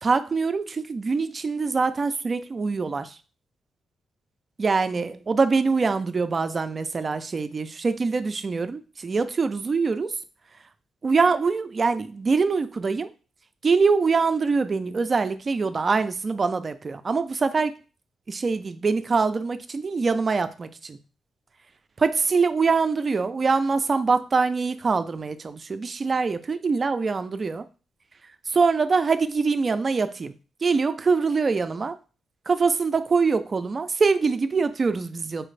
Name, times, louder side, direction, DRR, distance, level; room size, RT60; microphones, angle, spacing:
voice 1, 0.0-3.2 4.6-10.2 11.0-13.1 13.6-17.7 18.3-21.0 22.0-27.6 28.5-30.3 30.6-32.0 32.5-35.5, right 4 dB, 35° right, 11 dB, 0.3 m, -24 dB
4.4 x 2.5 x 3.2 m, 0.34 s
cardioid pair, 110°, 0 cm